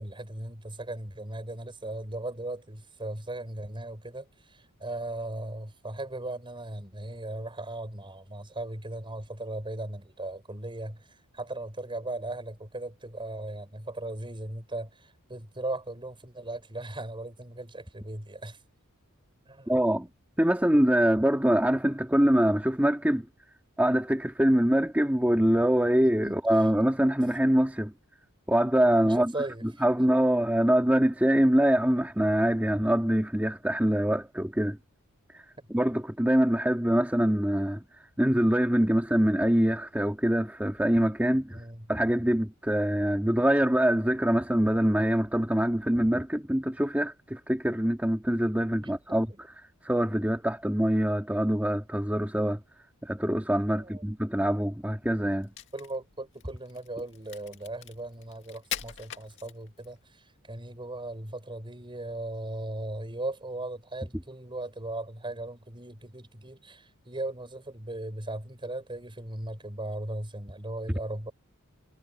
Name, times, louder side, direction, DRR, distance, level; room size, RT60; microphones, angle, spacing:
voice 1, 0.0-18.6 19.5-19.8 26.2-26.7 29.0-29.6 30.0-30.1 35.6-35.7 41.5-41.9 48.8-49.4 53.7-54.0 55.7-71.3, right 2 dB, 25° right, 5.6 m, -38 dB
voice 2, 19.7-20.1 20.4-23.3 23.8-27.9 28.5-29.3 29.8-34.8 35.3-35.4 35.7-37.8 38.2-41.6 41.9-49.3 49.8-52.6 53.0-55.5, equal, 5° right, 2.1 m, -24 dB
Crack, 55.4-60.0, left 10 dB, 55° left, 2.0 m, -42 dB
head